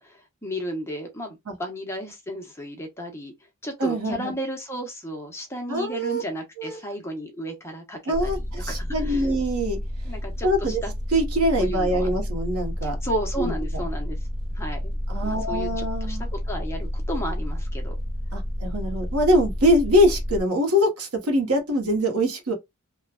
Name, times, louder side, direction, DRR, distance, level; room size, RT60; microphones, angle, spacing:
voice 1, 0.0-3.3 3.6-9.3 10.1-10.9 11.6-12.1 12.8-14.2 14.5-15.0 15.2-17.9, equal, 10° left, 0.8 m, -33 dB
voice 2, 3.8-4.3 5.7-6.2 6.6-6.8 8.1-9.8 10.4-10.8 11.1-12.9 13.4-13.5 15.1-16.3 18.3-22.5, equal, 85° right, 1.0 m, -23 dB
sound 1, 8.1-20.4, equal, 45° right, 0.7 m, -30 dB
3.1 x 2.2 x 2.3 m
head